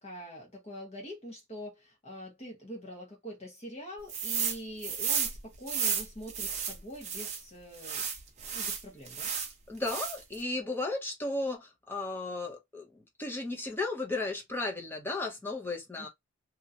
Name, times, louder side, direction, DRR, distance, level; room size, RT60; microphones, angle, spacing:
voice 1, 0.0-8.1 8.5-9.3 16.0-16.1, equal, 30° left, 1.1 m, -44 dB
sound 1, 4.1-4.6 4.8-7.4 7.8-9.5 9.8-10.4, right 7 dB, 35° right, 0.7 m, -33 dB
voice 2, 9.7-16.1, left 2 dB, 10° left, 0.8 m, -35 dB
2.8 x 2.4 x 2.7 m
head